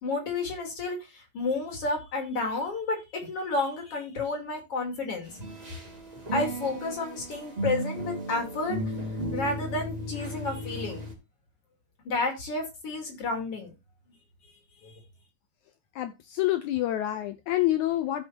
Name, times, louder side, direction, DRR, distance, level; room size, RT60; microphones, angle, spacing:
voice 1, 0.0-5.3 6.3-8.8 9.3-11.0 12.0-13.7 14.8-14.9, left 3 dB, 50° left, 3.2 m, -31 dB
sound 1, 5.3-11.1, right 1 dB, 15° right, 2.3 m, -35 dB
voice 2, 16.0-18.3, left 14 dB, 75° left, 2.0 m, -27 dB
15.0 x 5.7 x 2.8 m
omnidirectional pair, 3.6 m